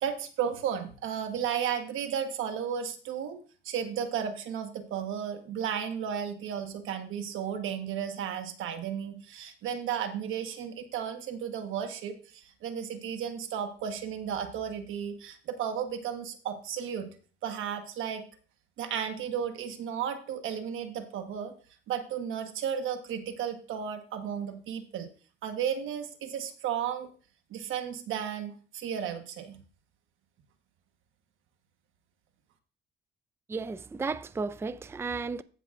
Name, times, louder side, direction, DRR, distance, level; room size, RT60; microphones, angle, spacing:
voice 1, 0.0-3.4 3.6-17.1 17.4-18.2 18.8-21.5 21.9-25.1 25.4-27.1 27.5-29.6, right 8 dB, 85° right, 1.2 m, -34 dB
voice 2, 33.5-35.4, right 4 dB, 10° right, 0.4 m, -34 dB
15.5 x 5.9 x 2.5 m
cardioid pair, 90°, 20 cm